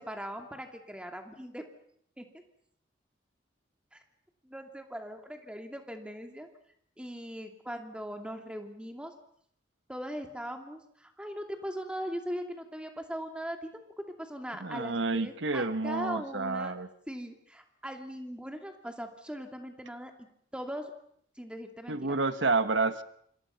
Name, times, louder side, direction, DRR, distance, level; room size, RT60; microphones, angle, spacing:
voice 1, 0.0-1.7 2.2-2.3 3.9-4.0 4.4-6.5 7.0-9.1 9.9-13.8 14.2-16.7 17.1-20.1 20.5-20.9 21.4-22.2, equal, 5° right, 4 dB, 2.7 m, -40 dB
voice 2, 14.6-16.9 21.9-23.0, right 3 dB, 85° right, 11 dB, 1.2 m, -29 dB
27.0 x 26.5 x 5.9 m, 0.68 s
head